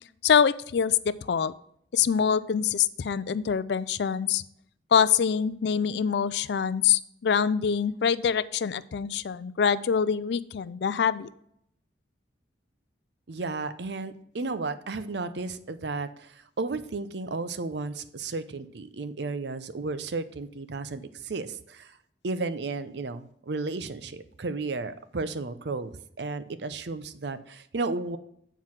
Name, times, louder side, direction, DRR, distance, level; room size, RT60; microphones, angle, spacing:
voice 1, 0.2-1.5 1.9-4.4 4.9-11.3, left 7 dB, 70° left, 16 dB, 0.4 m, -25 dB
voice 2, 13.3-21.9 22.2-28.2, right 3 dB, 70° right, 12 dB, 0.6 m, -33 dB
7.6 x 4.6 x 5.7 m, 0.71 s
head